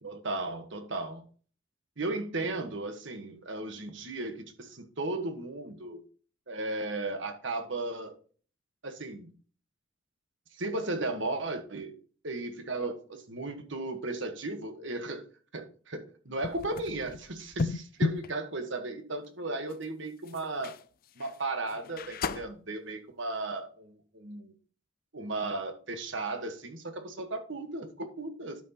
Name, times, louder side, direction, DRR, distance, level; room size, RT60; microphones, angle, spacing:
voice 1, 0.0-1.2 2.0-6.0 6.5-8.1 8.8-9.3 10.5-11.9 12.2-15.2 15.5-20.8 21.2-24.5 25.1-28.6, right 2 dB, 65° right, 1.4 m, -35 dB
sound 1, 16.4-18.3 19.7-19.8 20.3-20.8 21.2-21.4 21.7-22.5, left 4 dB, 50° left, 0.4 m, -34 dB
12.0 x 6.2 x 3.0 m
head